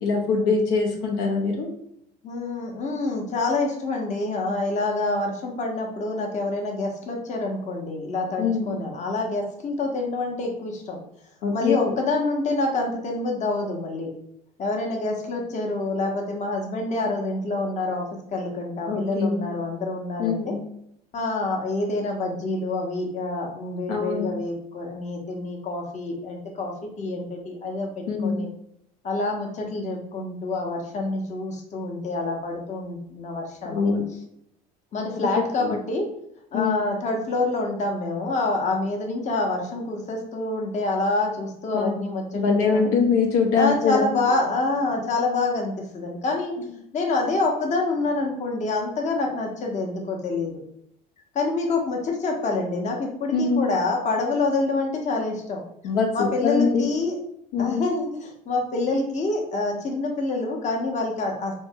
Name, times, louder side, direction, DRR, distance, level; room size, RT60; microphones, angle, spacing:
voice 1, 0.0-1.7 8.4-8.8 11.4-11.9 18.9-19.5 20.2-20.6 23.9-24.3 28.1-28.5 33.7-34.1 35.3-35.7 36.5-36.8 41.7-42.0 42.3-44.0 53.3-53.7 55.8-56.9 57.5-57.8, left 5 dB, 75° left, 1 dB, 0.7 m, -23 dB
voice 2, 2.2-11.0 11.5-14.1 14.6-20.6 21.1-28.5 29.0-33.9 34.9-36.1 36.5-42.9 43.5-46.5 46.9-50.6 51.3-55.6 56.1-57.2 57.6-61.5, left 2 dB, 35° left, 1 dB, 0.8 m, -27 dB
3.1 x 2.1 x 3.5 m, 0.75 s
supercardioid pair, 90°, 20 cm